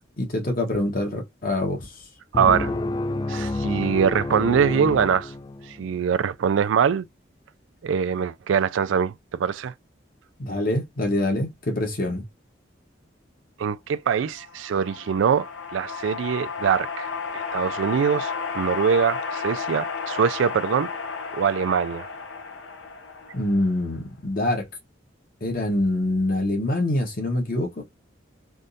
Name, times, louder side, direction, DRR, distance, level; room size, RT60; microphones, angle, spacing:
voice 1, 0.2-1.9 10.4-12.2 23.3-24.7 25.4-27.8, left 1 dB, 50° left, 1.1 m, -25 dB
sound 1, 2.3-5.9, left 2 dB, 25° left, 0.3 m, -29 dB
voice 2, 2.3-2.7 3.3-5.3 5.8-7.1 7.8-9.7 13.6-20.9 21.4-22.1, right 7 dB, 85° right, 0.3 m, -23 dB
sound 2, 14.3-23.9, left 5 dB, 75° left, 0.8 m, -33 dB
3.5 x 2.5 x 2.6 m
head